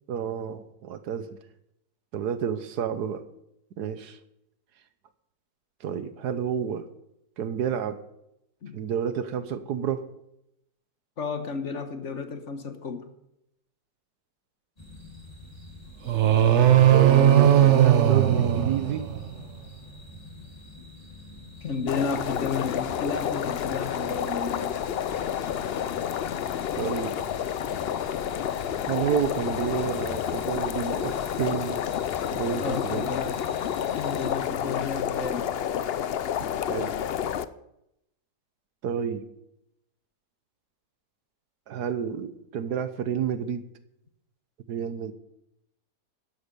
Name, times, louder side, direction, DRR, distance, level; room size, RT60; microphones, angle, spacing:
voice 1, 0.1-1.4 2.1-3.2 3.8-4.2 5.8-6.9 7.4-8.0 8.7-10.0 16.9-19.1 26.8-27.2 28.9-31.8 32.3-33.1 36.7-37.0 38.8-39.2 41.7-43.6 44.7-45.1, right 7 dB, 80° right, 11 dB, 1.5 m, -30 dB
voice 2, 11.2-13.0 21.6-24.7 32.6-33.4 34.0-35.5, left 5 dB, 50° left, 7 dB, 1.4 m, -32 dB
sound 1, 14.8-34.3, left 2 dB, 20° left, 3.7 m, -46 dB
sound 2, 16.1-19.4, right 11 dB, 55° right, 1.0 m, -18 dB
sound 3, 21.9-37.4, left 9 dB, 75° left, 0.5 m, -30 dB
12.0 x 11.0 x 5.3 m, 0.82 s
omnidirectional pair, 1.7 m